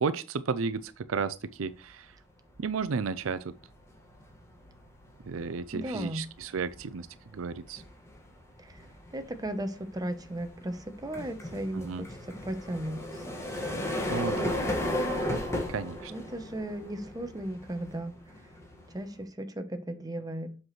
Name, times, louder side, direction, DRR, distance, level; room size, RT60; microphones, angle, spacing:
voice 1, 0.0-2.1 2.6-3.5 5.3-7.1 7.3-7.8 11.7-12.1 14.1-14.7 15.7-16.1, right 5 dB, 75° right, 0.5 m, -33 dB
sound 1, 1.8-2.1 2.5-19.2, left 1 dB, 15° left, 1.8 m, -36 dB
voice 2, 5.7-6.2 8.6-8.8 9.1-12.1 12.5-13.0 13.3-13.4 16.1-18.2 18.9-20.5, right 1 dB, 20° right, 0.9 m, -36 dB
7.6 x 5.9 x 3.2 m
head